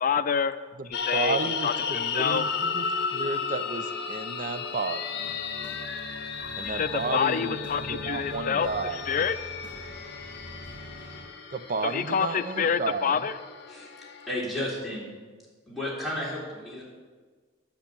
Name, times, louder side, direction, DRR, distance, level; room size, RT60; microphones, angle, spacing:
voice 1, 0.0-0.6 1.0-2.4 6.6-9.4 11.8-13.3, left 6 dB, 45° left, 11 dB, 0.4 m, -27 dB
voice 2, 0.8-5.3 6.6-7.6 7.9-9.0 11.5-13.3, right 4 dB, 45° right, 10 dB, 0.6 m, -32 dB
sound 1, 0.9-14.3, left 6 dB, 60° left, 0.8 m, -34 dB
sound 2, 5.2-11.2, right 1 dB, 75° right, 4.0 m, -44 dB
voice 3, 14.2-15.1 15.7-16.8, left 1 dB, ahead, -7 dB, 3.5 m, -32 dB
10.5 x 6.0 x 8.3 m, 1.4 s
head